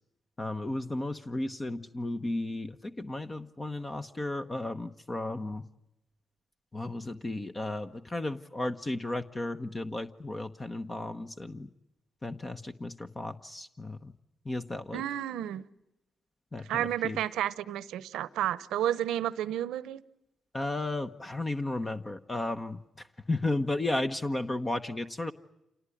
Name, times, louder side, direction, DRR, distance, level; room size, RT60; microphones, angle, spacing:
voice 1, 0.4-5.7 6.7-11.7 12.2-14.1 14.4-15.0 16.5-17.2 20.5-25.3, left 2 dB, 25° left, 1.1 m, -34 dB
voice 2, 14.9-15.6 16.7-20.0, right 11 dB, 90° right, 0.9 m, -31 dB
27.5 x 18.5 x 9.9 m
cardioid pair, 75°, 0 cm